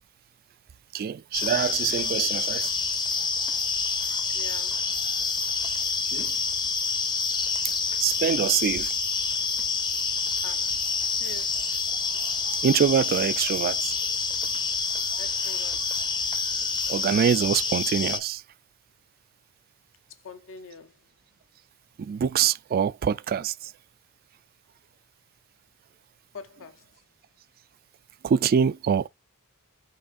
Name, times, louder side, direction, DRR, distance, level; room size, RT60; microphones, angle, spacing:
voice 1, 0.9-2.7 4.1-4.2 6.1-6.3 8.0-9.0 12.5-14.0 16.9-18.4 22.0-23.7 28.2-29.1, right 7 dB, 40° right, 0.3 m, -25 dB
sound 1, 1.3-18.2, left 4 dB, 20° left, 0.7 m, -27 dB
voice 2, 4.3-4.8 10.4-10.7 11.1-11.6 15.2-15.8 20.2-20.9 26.3-26.9, left 4 dB, 60° left, 0.9 m, -43 dB
5.5 x 3.3 x 2.5 m
head